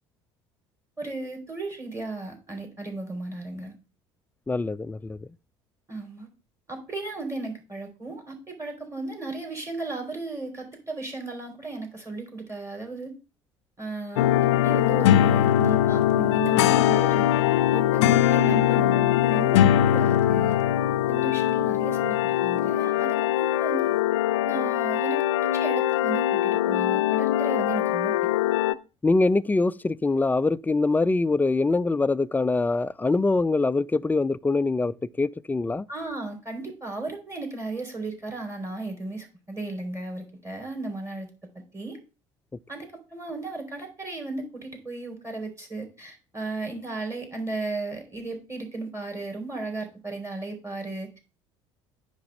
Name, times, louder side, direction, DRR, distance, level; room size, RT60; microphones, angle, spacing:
voice 1, 1.0-3.7 5.9-6.3 6.7-13.1 13.8-14.3 14.6-17.2 17.7-20.6 21.1-23.9 24.4-28.2 35.9-41.3 41.7-42.0 42.7-51.2, right 2 dB, 20° right, 3.5 m, -35 dB
voice 2, 4.5-5.3 29.0-35.8, left 3 dB, 10° left, 0.4 m, -24 dB
sound 1, 14.2-28.7, left 12 dB, 70° left, 0.5 m, -22 dB
9.7 x 3.3 x 6.4 m
figure-of-eight pair, 60°, 15 cm